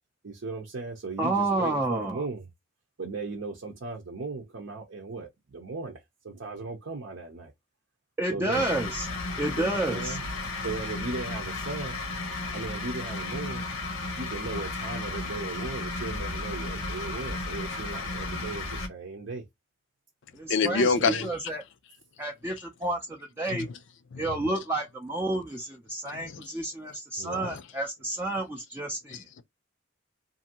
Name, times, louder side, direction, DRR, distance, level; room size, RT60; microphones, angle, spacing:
voice 1, 0.2-2.5 3.0-7.5 8.3-8.7 9.6-10.2 10.6-12.0 12.5-13.6 14.2-19.5 20.7-21.3 27.2-27.6, right 3 dB, 65° right, 0.6 m, -37 dB
voice 2, 1.2-2.2 8.2-9.1 9.4-10.2 20.3-20.9 21.2-21.6 22.2-23.7 24.2-29.3, right 2 dB, 10° right, 0.4 m, -30 dB
sound 1, 8.5-18.9, left 3 dB, 85° left, 0.9 m, -34 dB
voice 3, 20.5-21.3 23.5-23.8 24.1-24.3 26.0-26.5 26.9-27.0 27.4-27.6 29.1-29.4, left 5 dB, 60° left, 0.4 m, -28 dB
2.6 x 2.6 x 2.8 m
head